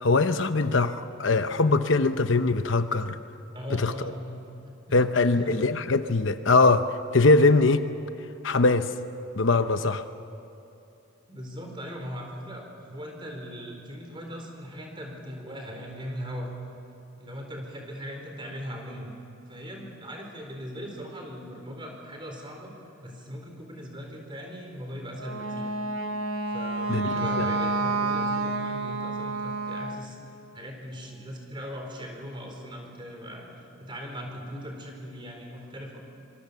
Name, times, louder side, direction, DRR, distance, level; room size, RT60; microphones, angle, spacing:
voice 1, 0.0-3.2 3.7-3.9 4.9-7.9 8.4-8.9 9.4-10.0 26.9-27.1 27.4-27.5, left 3 dB, 65° left, 10 dB, 0.8 m, -22 dB
voice 2, 3.5-5.6 11.3-16.5 17.2-19.1 19.5-22.7 23.0-25.8 26.5-30.2 30.5-36.0, equal, 25° right, 2 dB, 4.3 m, -39 dB
Wind instrument woodwind instrument, 25.1-30.1, right 3 dB, 80° right, 1.5 m, -29 dB
26.0 x 23.5 x 7.0 m, 2.9 s
head